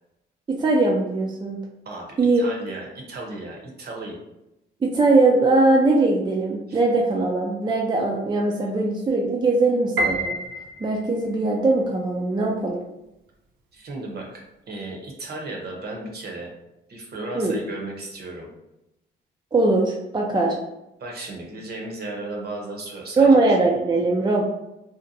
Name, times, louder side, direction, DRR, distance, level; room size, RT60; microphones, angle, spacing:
voice 1, 0.5-1.6 2.2-2.5 4.8-10.4 10.8-12.8 17.4-17.6 19.5-20.5 23.2-24.4, right 2 dB, 20° right, -2 dB, 0.4 m, -20 dB
voice 2, 2.4-4.2 6.7-6.8 13.7-16.5 16.9-18.5 21.0-23.4, right 2 dB, 55° right, 0 dB, 0.8 m, -35 dB
Piano, 10.0-11.3, right 1 dB, 90° right, 0.5 m, -27 dB
2.7 x 2.1 x 2.5 m, 0.90 s
cardioid pair, 90°, 20 cm